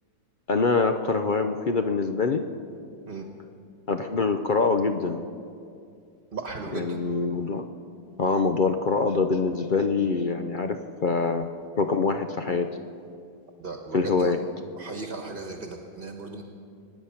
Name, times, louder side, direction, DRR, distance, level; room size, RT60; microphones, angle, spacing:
voice 1, 0.5-2.4 3.9-5.2 6.7-7.7 8.2-10.8 11.0-11.5 11.8-12.7 13.9-14.4, left 4 dB, 60° left, 7 dB, 0.5 m, -24 dB
voice 2, 6.3-7.0 13.6-14.3 14.8-16.4, right 4 dB, 40° right, 4 dB, 1.3 m, -36 dB
24.0 x 9.9 x 5.7 m, 2.4 s
omnidirectional pair, 1.6 m